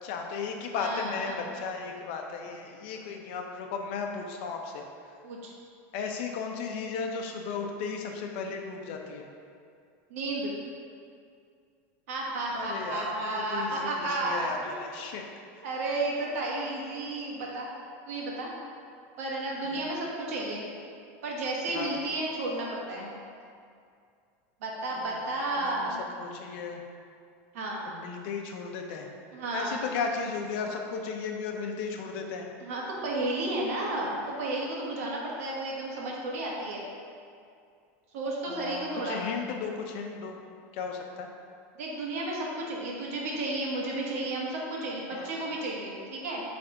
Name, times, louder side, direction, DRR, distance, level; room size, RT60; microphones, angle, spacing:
voice 1, 0.0-4.8 5.9-9.3 12.5-15.2 19.7-19.8 21.7-22.0 25.0-25.2 25.6-26.8 27.9-29.1 29.5-32.4 38.5-40.4 40.7-41.3 45.1-45.4, left 5 dB, 50° left, 3 dB, 0.7 m, -35 dB
voice 2, 0.8-1.4 5.2-5.5 10.1-10.5 12.1-14.7 15.6-17.7 18.1-18.5 19.2-20.7 21.2-23.1 24.6-26.0 27.5-27.8 29.3-29.8 32.6-36.8 38.1-39.2 41.8-46.4, right 2 dB, 80° right, -3 dB, 1.4 m, -32 dB
7.8 x 3.5 x 3.9 m, 2.3 s
supercardioid pair, 170°, 8 cm